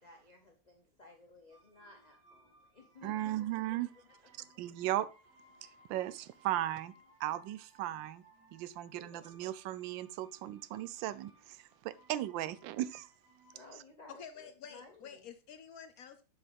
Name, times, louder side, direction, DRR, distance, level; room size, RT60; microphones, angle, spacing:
voice 1, 0.0-3.6 8.9-9.2 13.5-15.2, left 2 dB, 35° left, 0.7 m, -57 dB
sound 1, 1.5-13.7, right 1 dB, 70° right, 4.1 m, -65 dB
voice 2, 3.0-3.9 4.6-5.1 5.6-6.9 7.2-8.2 8.5-13.1, right 14 dB, 90° right, 1.3 m, -37 dB
voice 3, 14.1-16.3, left 7 dB, 70° left, 0.9 m, -50 dB
6.9 x 6.8 x 3.4 m
omnidirectional pair, 2.0 m